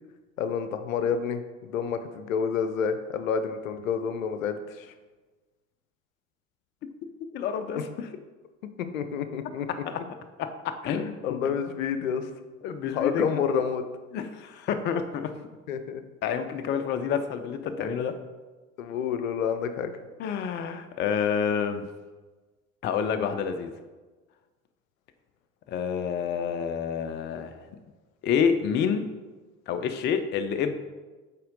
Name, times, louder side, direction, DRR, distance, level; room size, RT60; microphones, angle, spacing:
voice 1, 0.4-4.9 7.8-7.9 8.9-9.7 11.2-12.3 12.9-13.8 15.7-16.0 18.8-19.9, left 7 dB, 70° left, 10 dB, 0.6 m, -29 dB
voice 2, 7.3-8.1 9.8-10.0 10.4-11.2 11.4-11.5 12.6-13.4 14.1-15.3 16.2-18.1 20.2-21.9 22.8-23.7 25.7-27.6 28.2-29.1 29.7-30.7, left 7 dB, 25° left, 9 dB, 0.4 m, -28 dB
8.4 x 3.6 x 3.8 m, 1.3 s
figure-of-eight pair, 65°, 42 cm